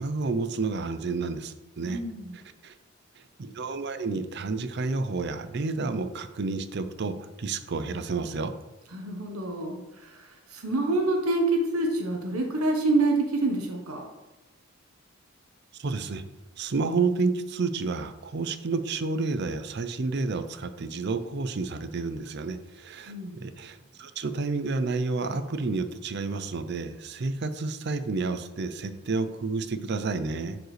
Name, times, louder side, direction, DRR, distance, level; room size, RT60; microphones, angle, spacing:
voice 1, 0.0-2.0 2.3-2.7 3.2-8.5 15.8-16.2 16.6-30.6, right 3 dB, 50° right, 11 dB, 0.5 m, -30 dB
voice 2, 1.8-2.4 8.9-14.1 23.1-23.4, right 2 dB, 90° right, 2 dB, 1.0 m, -27 dB
10.5 x 4.7 x 3.2 m, 1.0 s
head